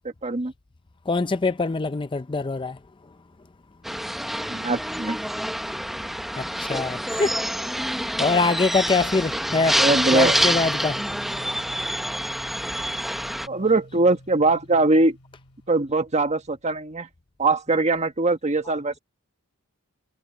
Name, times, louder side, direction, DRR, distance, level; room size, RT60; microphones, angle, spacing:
voice 1, 0.2-0.5 4.5-5.2 9.7-10.3 13.5-15.2 15.7-17.1 17.4-19.0, right 2 dB, 30° right, 1.4 m, -22 dB
voice 2, 1.1-2.8 6.4-7.4 8.2-9.8 10.1-11.0, left 3 dB, 20° left, 0.5 m, -23 dB
sound 1, 3.8-13.5, equal, ahead, 1.0 m, -27 dB
sound 2, 9.5-16.3, equal, 70° left, 2.9 m, -46 dB
head